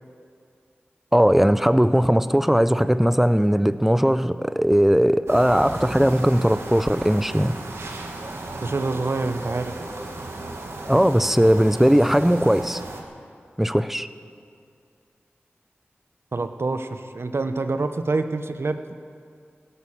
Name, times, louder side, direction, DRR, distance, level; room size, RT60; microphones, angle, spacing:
voice 1, 1.1-7.6 10.9-12.8 13.6-14.1, equal, 5° right, 13 dB, 0.6 m, -19 dB
sound 1, 5.3-13.0, right 2 dB, 85° right, 1.6 m, -35 dB
voice 2, 8.6-9.7 16.3-18.9, right 3 dB, 65° right, 9 dB, 0.9 m, -26 dB
17.0 x 11.5 x 7.3 m, 2.4 s
cardioid pair, 40°, 4 cm